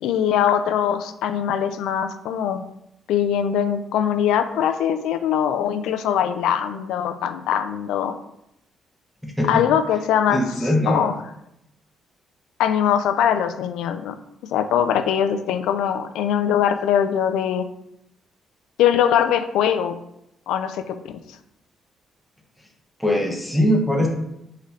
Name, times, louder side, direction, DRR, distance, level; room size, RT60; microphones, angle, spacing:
voice 1, 0.0-2.6 3.1-8.1 9.5-10.4 10.9-11.1 12.6-14.1 14.5-17.7 18.8-19.9 20.5-21.1, left 9 dB, 90° left, 9 dB, 0.4 m, -21 dB
voice 2, 9.2-9.6 10.3-11.1 23.0-24.1, equal, ahead, 0 dB, 1.0 m, -21 dB
3.7 x 3.3 x 4.1 m, 0.81 s
cardioid pair, 90°, 0 cm